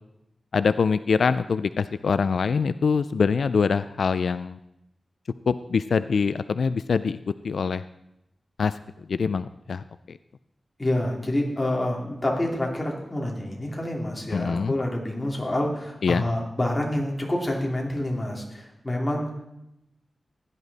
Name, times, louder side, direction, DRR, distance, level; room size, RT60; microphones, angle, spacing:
voice 1, 0.5-4.6 5.5-7.2 7.4-7.8 8.6-8.7 9.1-10.2 14.3-14.7 16.0-16.3, left 5 dB, 80° left, 13 dB, 0.3 m, -24 dB
voice 2, 10.8-19.3, left 1 dB, 20° left, -1 dB, 2.7 m, -27 dB
16.0 x 11.0 x 4.1 m, 0.86 s
wide cardioid pair, 140°, 0 cm